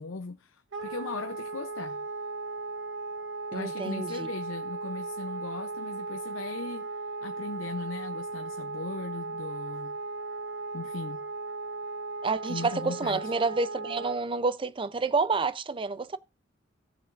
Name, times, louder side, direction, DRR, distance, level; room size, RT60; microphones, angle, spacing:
voice 1, 0.0-2.0 3.5-6.9 7.2-10.0 10.7-11.2 12.5-13.3, left 3 dB, 90° left, 0.6 m, -38 dB
Wind instrument woodwind instrument, 0.7-14.2, right 3 dB, 70° right, 1.3 m, -37 dB
voice 2, 3.5-4.3 12.2-16.2, right 4 dB, 25° right, 0.5 m, -29 dB
17.0 x 6.9 x 2.5 m
head